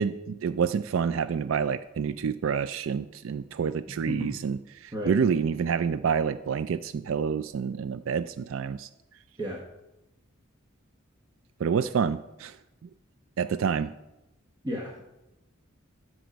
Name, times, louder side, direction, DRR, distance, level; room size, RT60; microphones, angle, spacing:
voice 1, 0.0-8.9 11.6-12.6 12.8-12.9 13.4-13.9, right 6 dB, 70° right, 13 dB, 0.4 m, -28 dB
voice 2, 14.6-15.1, equal, 20° right, -1 dB, 1.1 m, -33 dB
12.5 x 6.2 x 5.1 m, 0.95 s
head